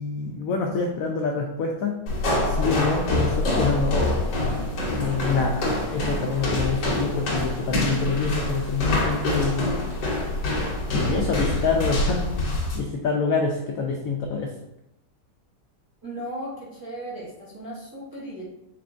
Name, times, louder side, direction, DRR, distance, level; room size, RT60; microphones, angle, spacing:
voice 1, 0.0-1.9 2.4-4.0 4.9-5.6 5.9-9.7 10.9-12.2 12.7-14.5, left 4 dB, 80° left, 1 dB, 0.7 m, -26 dB
sound 1, 2.1-12.8, left 1 dB, 65° left, 1.6 m, -25 dB
voice 2, 16.0-18.4, right 1 dB, 30° right, -10 dB, 0.4 m, -36 dB
4.4 x 4.1 x 2.5 m, 0.87 s
omnidirectional pair, 2.0 m